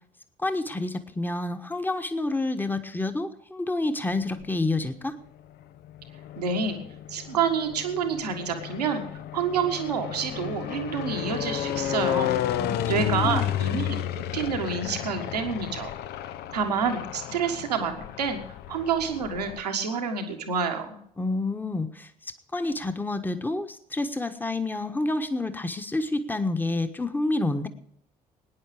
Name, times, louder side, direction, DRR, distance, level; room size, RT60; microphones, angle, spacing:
voice 1, 0.4-5.2 12.5-12.8 13.2-13.6 21.2-22.1 22.5-27.7, left 2 dB, 10° left, 8 dB, 1.3 m, -28 dB
sound 1, 4.1-4.9 5.6-19.6, left 12 dB, 55° left, 0.7 m, -32 dB
voice 2, 6.4-6.8 7.1-9.0 9.3-12.4 12.9-15.9 16.5-18.4 18.7-21.0, right 6 dB, 80° right, 4 dB, 1.6 m, -28 dB
20.0 x 9.9 x 5.0 m, 0.73 s
figure-of-eight pair, 50°, 20 cm